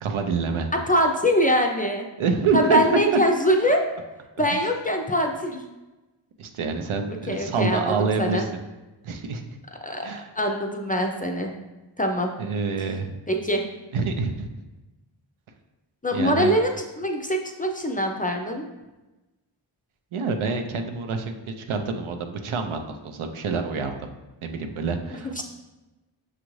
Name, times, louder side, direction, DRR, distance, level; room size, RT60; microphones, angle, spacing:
voice 1, 0.0-0.7 2.2-2.8 4.5-4.6 6.4-8.5 9.0-9.4 10.0-10.3 12.4-13.1 13.9-14.6 16.1-16.5 20.1-24.1 24.4-25.4, right 4 dB, 85° right, 5 dB, 0.6 m, -27 dB
voice 2, 0.9-2.1 2.5-3.8 4.4-5.6 7.3-8.5 9.8-10.1 10.3-11.5 12.0-12.3 13.3-13.6 16.0-18.6 25.2-25.4, equal, 20° left, 2 dB, 0.4 m, -23 dB
6.2 x 2.5 x 3.0 m, 1.1 s
wide cardioid pair, 60°, 48 cm